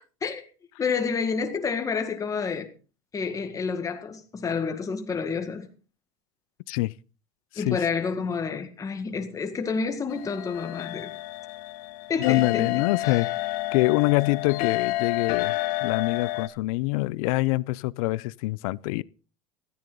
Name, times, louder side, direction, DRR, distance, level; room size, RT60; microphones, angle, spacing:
voice 1, 0.8-2.7 3.1-5.7 7.6-11.1 12.1-13.3, left 5 dB, 20° left, 1.8 m, -29 dB
sound 1, 10.1-16.5, left 16 dB, 50° left, 1.3 m, -30 dB
voice 2, 12.2-19.0, left 21 dB, 70° left, 0.6 m, -25 dB
16.0 x 14.0 x 3.9 m
supercardioid pair, 145°, 18 cm